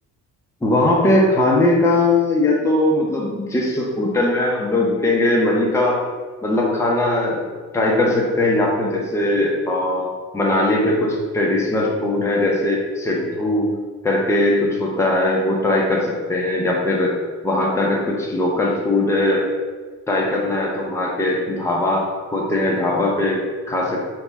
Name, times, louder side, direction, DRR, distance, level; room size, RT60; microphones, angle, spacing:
voice 1, 0.6-6.0 6.4-7.4 7.7-13.8 14.0-17.2 17.4-19.5 20.1-24.1, left 2 dB, 10° left, -2 dB, 0.7 m, -20 dB
4.3 x 2.3 x 4.0 m, 1.4 s
cardioid pair, 90°, 30 cm